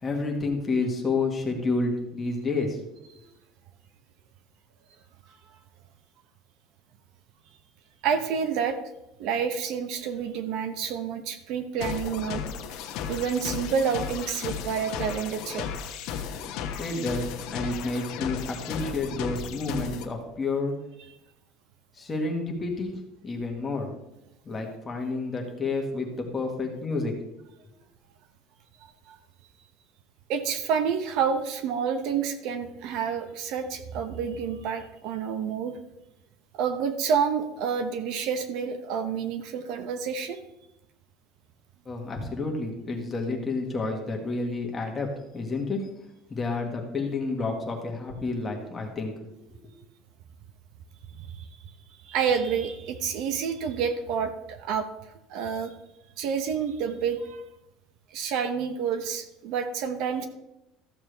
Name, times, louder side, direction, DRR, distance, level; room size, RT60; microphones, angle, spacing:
voice 1, 0.0-2.8 16.3-16.4 16.8-20.7 21.9-22.9 23.2-23.9 24.5-27.1 41.9-45.1 45.3-45.8 46.3-49.3, left 3 dB, 15° left, 1 dB, 1.7 m, -30 dB
voice 2, 8.0-8.8 9.2-12.4 13.1-15.7 29.1-29.2 30.3-35.7 36.5-40.4 51.2-51.5 52.0-54.9 55.3-55.7 56.2-57.5 58.1-60.3, right 7 dB, 60° right, 9 dB, 0.9 m, -29 dB
sound 1, 11.8-20.1, left 7 dB, 60° left, 1.1 m, -35 dB
14.0 x 7.3 x 3.4 m, 0.89 s
cardioid pair, 160°, 0 cm